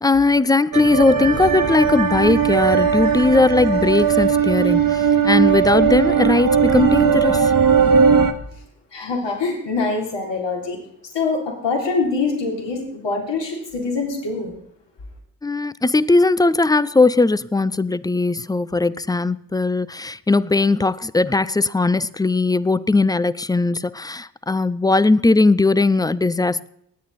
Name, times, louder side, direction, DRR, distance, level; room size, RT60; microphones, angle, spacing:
voice 1, 0.0-7.5 15.4-26.7, left 3 dB, 10° left, 0.4 m, -18 dB
sound 1, 0.7-8.3, right 6 dB, 45° right, 1.4 m, -18 dB
voice 2, 8.9-10.8 11.1-14.5, left 4 dB, 65° left, 3.6 m, -24 dB
19.5 x 8.5 x 4.1 m
supercardioid pair, 50°, 47 cm